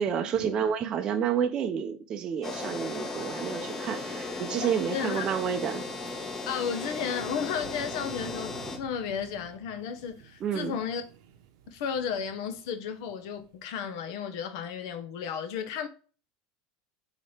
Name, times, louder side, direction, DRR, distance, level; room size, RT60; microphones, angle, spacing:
voice 1, 0.0-5.9 10.4-10.8, right 8 dB, 30° right, 0.5 m, -29 dB
sound 1, 2.4-8.8, left 3 dB, 25° left, 0.9 m, -36 dB
Wind, 3.8-14.1, right 9 dB, 70° right, 0.7 m, -52 dB
voice 2, 4.6-5.3 6.5-11.0 11.7-15.9, left 7 dB, 70° left, 0.7 m, -33 dB
4.3 x 2.8 x 3.2 m
supercardioid pair, 135°, 3 cm